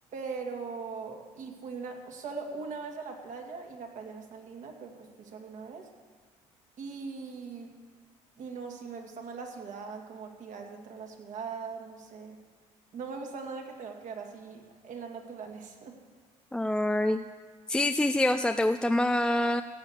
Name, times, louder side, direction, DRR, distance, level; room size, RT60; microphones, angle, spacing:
voice 1, 0.1-5.9 6.8-7.7 8.4-12.4 12.9-16.0, right 5 dB, 55° right, 3 dB, 2.3 m, -40 dB
voice 2, 16.5-17.2 17.7-19.6, left 1 dB, 5° left, 7 dB, 0.5 m, -26 dB
16.0 x 8.2 x 7.3 m, 1.5 s
supercardioid pair, 85°, 14 cm